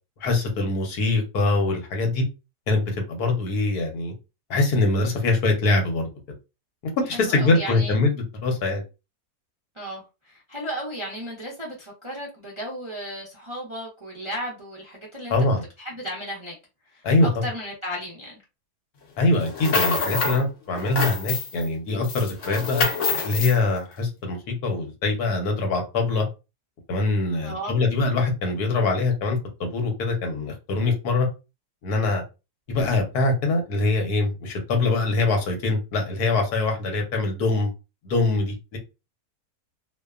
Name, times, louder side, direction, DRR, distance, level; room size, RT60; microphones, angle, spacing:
voice 1, 0.2-2.2 2.7-4.1 4.5-6.1 7.1-8.8 15.3-15.6 17.0-17.3 19.2-22.8 23.2-26.2 26.9-31.3 31.8-32.2 32.7-37.7 38.0-38.8, left 3 dB, 75° left, 1.3 m, -23 dB
voice 2, 7.1-8.0 9.8-15.4 15.8-16.5 16.9-17.0 17.4-18.3 27.4-27.7, equal, 35° right, 0.4 m, -34 dB
sound 1, 19.4-20.4 20.7-21.7 22.0-23.6, left 4 dB, 60° left, 0.9 m, -26 dB
2.8 x 2.2 x 2.3 m
omnidirectional pair, 1.7 m